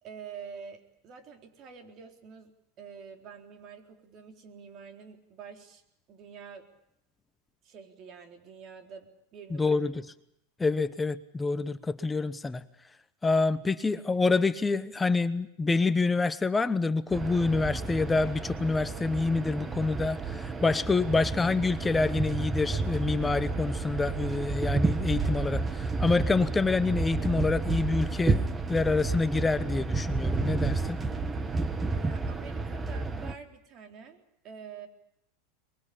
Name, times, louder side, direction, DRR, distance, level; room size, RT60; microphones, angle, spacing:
voice 1, 0.0-5.8 6.1-6.7 7.6-9.8 31.3-34.9, right 6 dB, 40° right, 6 dB, 4.0 m, -47 dB
voice 2, 9.6-10.0 10.6-12.6 13.2-28.4 28.7-31.0, left 3 dB, 10° left, 13 dB, 1.0 m, -27 dB
sound 1, 17.1-33.3, right 3 dB, 15° right, 1.4 m, -31 dB
23.5 x 22.0 x 8.6 m, 0.79 s
supercardioid pair, 135°, 0 cm